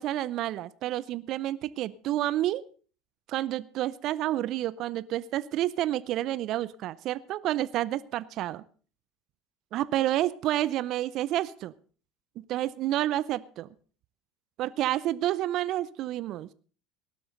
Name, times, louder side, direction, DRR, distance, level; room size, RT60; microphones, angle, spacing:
voice 1, 0.0-2.6 3.3-8.6 9.7-11.7 12.4-13.7 14.6-16.5, right 14 dB, 55° right, 19 dB, 0.5 m, -29 dB
18.5 x 12.0 x 3.9 m, 0.41 s
hypercardioid pair, 70°, 0 cm